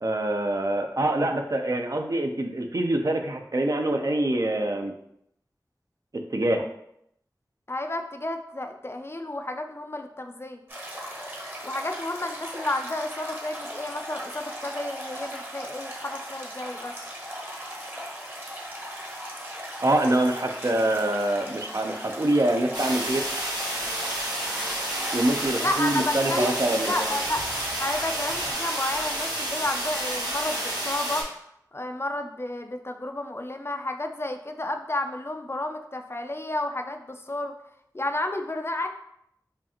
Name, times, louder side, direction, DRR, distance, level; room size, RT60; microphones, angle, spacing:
voice 1, 0.0-4.9 6.3-6.7 19.8-23.2 25.1-27.1, right 1 dB, 50° right, 4 dB, 0.5 m, -25 dB
voice 2, 7.7-10.6 11.6-16.9 25.5-27.4 27.8-37.5 37.9-38.9, left 1 dB, 35° left, 6 dB, 0.3 m, -31 dB
sound 1, 10.7-28.5, equal, 30° right, 0.9 m, -38 dB
sound 2, 22.7-31.2, right 1 dB, 80° right, 1.0 m, -30 dB
5.0 x 2.4 x 2.8 m, 0.75 s
wide cardioid pair, 55°, 7 cm